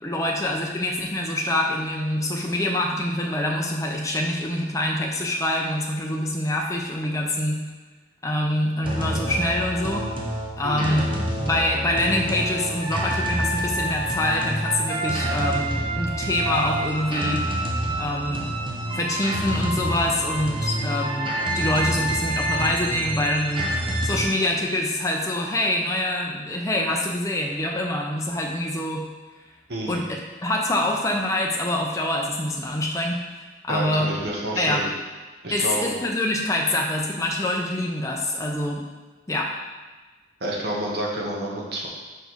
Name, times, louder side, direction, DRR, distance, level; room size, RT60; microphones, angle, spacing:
voice 1, 0.0-7.6 8.2-10.1 10.6-11.1 11.4-17.5 18.0-18.5 18.9-23.7 24.0-29.0 29.9-33.2 33.6-34.1 34.5-34.8 35.5-38.8 39.3-39.5, left 1 dB, 15° left, 0 dB, 0.6 m, -25 dB
sound 1, 8.8-24.3, right 1 dB, 25° right, 0.6 m, -27 dB
voice 2, 10.6-11.2 29.7-30.0 33.7-34.9 35.4-36.0 40.4-41.9, right 1 dB, 55° right, -3 dB, 1.2 m, -29 dB
5.2 x 4.5 x 4.6 m, 1.3 s
head